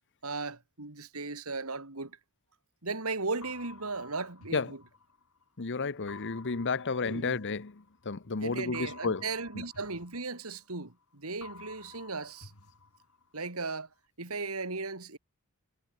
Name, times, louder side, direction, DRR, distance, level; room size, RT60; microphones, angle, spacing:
voice 1, 0.2-2.2 2.8-4.8 7.0-7.4 8.4-12.5 13.3-13.9 14.2-15.2, right 3 dB, 70° right, 2.9 m, -36 dB
sound 1, 3.4-5.5 6.1-8.2 8.7-11.0 11.4-13.5, left 4 dB, 75° left, 4.9 m, -52 dB
voice 2, 5.6-9.2 9.5-9.6, left 4 dB, 55° left, 0.9 m, -32 dB
head